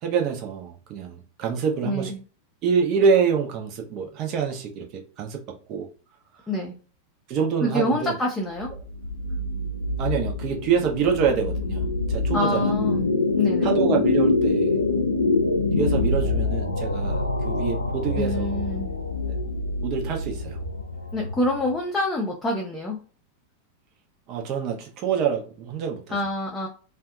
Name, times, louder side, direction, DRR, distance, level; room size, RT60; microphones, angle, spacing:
voice 1, 0.0-2.1 2.6-5.4 5.7-5.9 7.3-8.2 10.0-12.7 13.6-14.8 15.8-18.6 19.8-20.6 24.3-26.2, right 6 dB, 40° right, 0.6 m, -26 dB
voice 2, 1.8-2.2 6.5-6.8 7.6-8.7 12.3-13.7 18.2-18.9 21.1-23.0 26.1-26.7, left 1 dB, 15° left, 0.6 m, -26 dB
sound 1, 8.6-21.8, left 3 dB, 85° left, 0.3 m, -25 dB
2.6 x 2.3 x 2.3 m
figure-of-eight pair, 90°, 0 cm